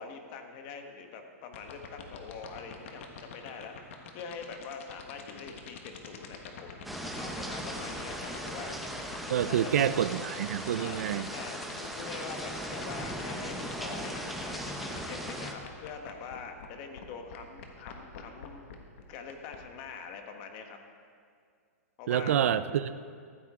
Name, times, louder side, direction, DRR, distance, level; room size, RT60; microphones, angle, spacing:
voice 1, 0.0-3.8 4.1-8.7 9.4-9.9 10.8-11.0 11.3-18.7 19.1-20.8 22.0-22.4, left 5 dB, 35° left, 5 dB, 1.2 m, -44 dB
sound 1, 1.5-16.7 17.0-17.1 17.3-19.6, left 8 dB, 55° left, 1.5 m, -45 dB
sound 2, 6.8-15.5, right 1 dB, ahead, 0.7 m, -38 dB
voice 2, 9.3-11.3 22.1-22.9, right 10 dB, 65° right, 14 dB, 0.5 m, -27 dB
14.5 x 13.0 x 3.7 m, 2.2 s
supercardioid pair, 165°, 8 cm